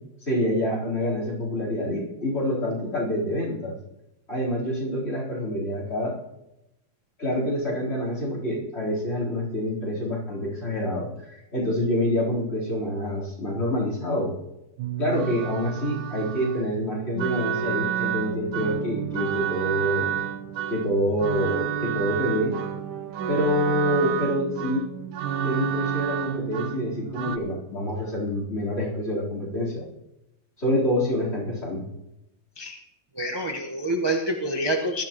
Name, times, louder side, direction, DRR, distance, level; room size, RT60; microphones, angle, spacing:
voice 1, 0.2-3.8 4.3-6.1 7.2-14.3 15.0-20.1 20.7-22.6 23.3-24.9 25.4-29.8 30.6-31.9, equal, 30° left, -5 dB, 4.3 m, -27 dB
sound 1, 14.8-27.4, right 9 dB, 85° right, 1.5 m, -30 dB
voice 2, 33.1-35.0, right 1 dB, 20° right, 1 dB, 0.9 m, -27 dB
20.5 x 12.0 x 3.0 m, 0.89 s
omnidirectional pair, 2.1 m